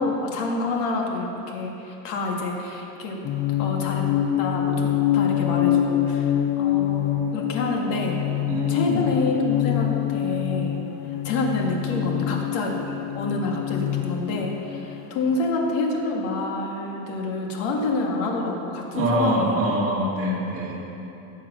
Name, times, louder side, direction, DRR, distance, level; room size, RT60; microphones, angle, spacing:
voice 1, 0.0-3.2 3.6-4.1 4.4-8.2 8.7-10.8 11.2-19.6, left 2 dB, 75° left, 0 dB, 2.3 m, -27 dB
sound 1, 3.2-15.3, left 11 dB, 30° left, 0.4 m, -25 dB
voice 2, 8.5-9.0 18.9-20.9, equal, 35° right, -5 dB, 2.7 m, -24 dB
18.0 x 7.4 x 6.0 m, 2.9 s
cardioid pair, 160°, 38 cm